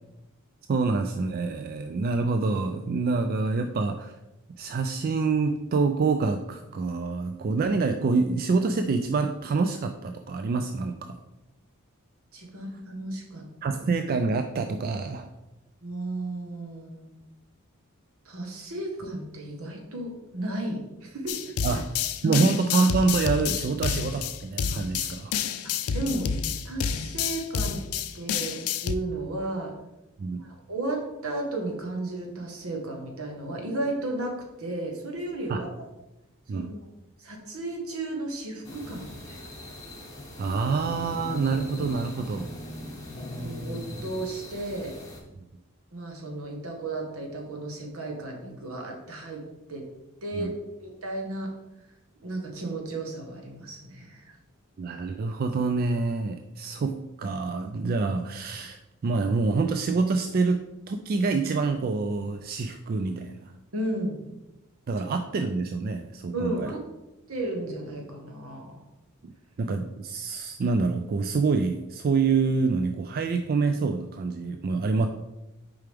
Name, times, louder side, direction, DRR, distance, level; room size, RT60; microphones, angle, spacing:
voice 1, 0.7-4.2 4.6-11.2 13.6-15.3 21.6-21.9 22.2-25.3 30.2-30.4 35.5-35.6 36.5-36.7 40.4-42.5 45.4-45.5 50.3-50.5 54.8-63.5 64.9-66.7 69.2-69.3 69.6-75.1, right 4 dB, 45° right, 7 dB, 0.3 m, -26 dB
voice 2, 12.3-13.4 15.8-17.1 18.2-21.4 22.2-22.5 25.6-26.3 26.6-27.8 28.1-29.7 30.4-35.7 36.5-36.7 37.2-39.4 43.3-45.0 45.9-49.4 49.7-49.9 50.2-51.5 52.2-54.3 63.7-64.2 66.3-66.8 67.3-68.8, right 2 dB, 75° right, 1 dB, 1.3 m, -34 dB
sound 1, 21.3-28.9, left 7 dB, 85° left, 0.4 m, -29 dB
sound 2, 38.6-45.2, left 1 dB, 15° left, 1.4 m, -39 dB
6.7 x 4.8 x 3.4 m, 0.97 s
head